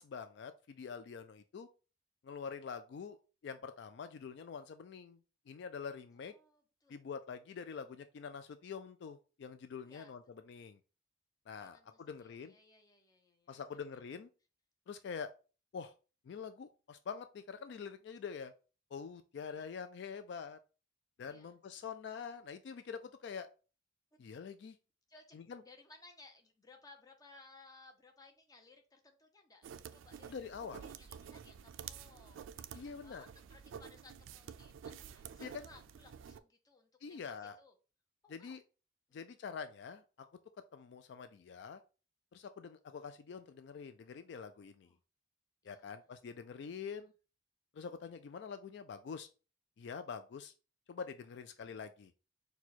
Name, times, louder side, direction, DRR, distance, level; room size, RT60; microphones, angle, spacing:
voice 1, 0.0-1.7 2.2-3.2 3.4-5.2 5.5-6.3 6.9-10.8 11.5-12.5 13.5-14.3 14.9-15.3 15.7-15.9 16.2-18.5 18.9-20.6 21.2-23.5 24.2-24.8 25.3-25.6 30.3-30.8 32.7-33.2 35.4-35.7 37.0-37.6 38.3-38.6 39.1-40.3 40.7-41.8 42.3-44.9 45.6-47.1 47.7-49.3 49.8-50.5 50.9-52.1, left 6 dB, 60° left, 9 dB, 0.3 m, -45 dB
voice 2, 6.2-7.0 9.8-10.1 11.6-13.6 19.5-19.7 21.2-21.6 25.1-25.4 25.6-30.4 30.8-37.7 38.2-38.6 39.1-39.2 44.8-45.0 45.6-46.0, left 3 dB, 20° left, 4 dB, 0.7 m, -61 dB
sound 1, 29.6-36.4, right 8 dB, 80° right, 0.3 m, -50 dB
4.5 x 2.3 x 4.0 m, 0.34 s
head